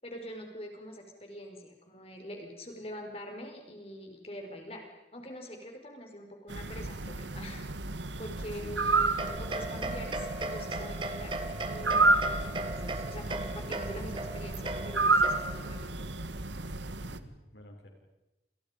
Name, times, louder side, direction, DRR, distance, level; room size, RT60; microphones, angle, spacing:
voice 1, 0.0-4.8 5.1-7.6 8.2-11.3 11.6-16.0, equal, 35° left, 3 dB, 5.4 m, -44 dB
sound 1, 6.5-17.2, right 3 dB, 90° right, 1.5 m, -31 dB
voice 2, 8.5-9.8 17.0-17.9, equal, 80° left, 2 dB, 6.6 m, -52 dB
sound 2, 9.2-15.7, right 2 dB, 25° right, 2.1 m, -38 dB
29.5 x 28.5 x 5.4 m, 1.0 s
head